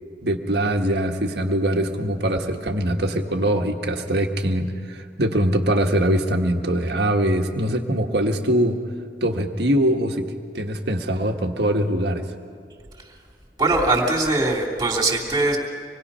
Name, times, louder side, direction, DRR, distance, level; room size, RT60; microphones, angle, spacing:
voice 1, 0.2-8.8 9.2-10.3 10.5-12.3, right 1 dB, 70° right, 4 dB, 1.5 m, -22 dB
voice 2, 13.6-15.6, right 2 dB, 25° right, -3 dB, 3.0 m, -21 dB
26.0 x 20.5 x 5.6 m, 2.1 s
head